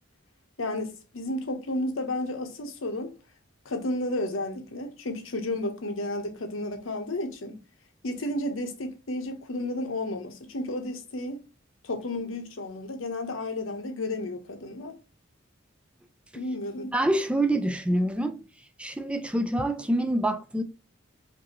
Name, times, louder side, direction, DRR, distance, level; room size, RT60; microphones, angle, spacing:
voice 1, 0.6-3.1 3.6-7.6 8.0-11.4 11.8-15.0 16.3-16.9, left 1 dB, 80° left, 0.9 m, -32 dB
voice 2, 16.9-18.4 18.8-20.6, right 1 dB, 5° right, 0.3 m, -26 dB
5.1 x 2.7 x 2.9 m
head